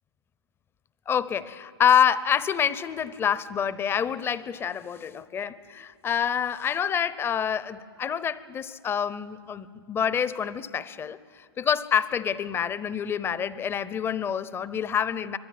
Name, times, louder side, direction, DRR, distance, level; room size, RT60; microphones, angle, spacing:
voice 1, 1.1-15.4, left 8 dB, 15° left, 17 dB, 0.8 m, -27 dB
25.0 x 21.5 x 9.3 m, 2.3 s
hypercardioid pair, 130°, 14 cm